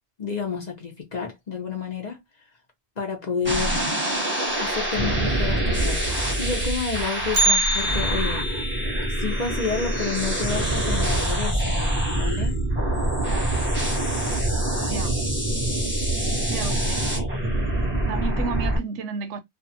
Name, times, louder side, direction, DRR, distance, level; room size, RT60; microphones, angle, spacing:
voice 1, 0.2-2.2 3.0-4.0 4.6-8.5 9.2-11.8 12.1-12.6, left 5 dB, 40° left, 0.8 m, -30 dB
sound 1, 3.4-18.8, right 1 dB, 10° right, 1.0 m, -25 dB
Bell, 7.3-11.4 11.7-11.8 12.3-12.4 13.2-13.3 14.1-14.3 14.7-14.8, right 1 dB, 50° right, 0.8 m, -28 dB
voice 2, 14.8-15.1 16.5-17.1 18.1-19.4, right 5 dB, 80° right, 0.9 m, -32 dB
2.5 x 2.5 x 2.7 m
omnidirectional pair, 1.2 m